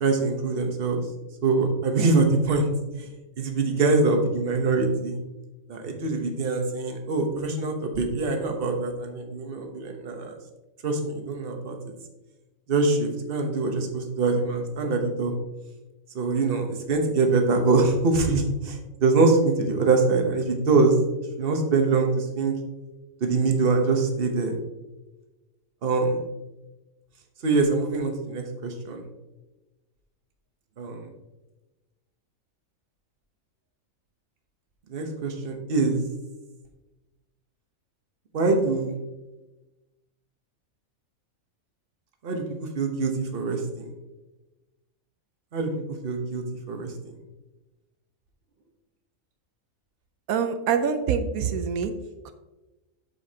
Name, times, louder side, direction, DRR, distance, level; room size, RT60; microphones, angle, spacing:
voice 1, 0.0-1.0 1.4-2.7 3.4-5.2 5.7-10.3 10.8-11.9 12.7-15.3 16.1-20.9 21.4-22.6 23.2-24.6 25.8-26.2 27.4-29.0 30.8-31.1 34.9-36.0 38.3-39.0 42.2-43.9 45.5-45.7 46.0-46.9, right 3 dB, 45° right, 4 dB, 1.1 m, -24 dB
voice 2, 50.3-51.9 52.2-52.3, right 6 dB, 85° right, 8 dB, 1.1 m, -25 dB
7.9 x 7.1 x 2.8 m, 1.1 s
omnidirectional pair, 1.5 m